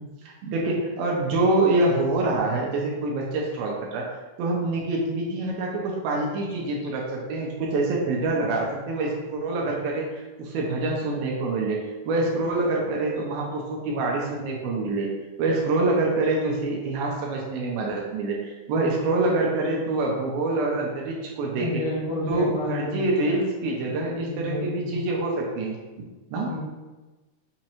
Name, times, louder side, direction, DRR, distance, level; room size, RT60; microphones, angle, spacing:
voice 1, 0.0-4.0 4.4-11.8 12.1-15.1 15.4-21.8 22.3-26.5, right 2 dB, 80° right, -2 dB, 2.3 m, -26 dB
voice 2, 21.6-23.3 24.1-25.0 26.5-26.6, left 2 dB, 80° left, -7 dB, 1.3 m, -30 dB
6.2 x 2.9 x 2.9 m, 1.2 s
omnidirectional pair, 4.6 m